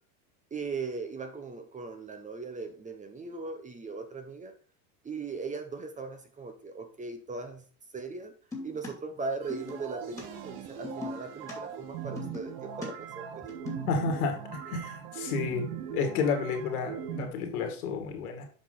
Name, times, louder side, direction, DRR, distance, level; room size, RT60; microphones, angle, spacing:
voice 1, 0.5-4.5 5.0-7.6 7.9-8.3 8.6-13.5, right 4 dB, 15° right, 6 dB, 1.0 m, -39 dB
sound 1, 8.5-8.9 9.5-9.9 10.2-10.3 10.8-11.5 12.2-12.9 13.4-13.9, left 3 dB, 5° left, 2.5 m, -39 dB
sound 2, 9.4-17.3, right 8 dB, 70° right, 1.4 m, -40 dB
voice 2, 13.9-15.7 15.9-18.5, left 5 dB, 85° left, 4 dB, 2.2 m, -31 dB
7.3 x 5.4 x 3.9 m, 0.42 s
supercardioid pair, 125°, 44 cm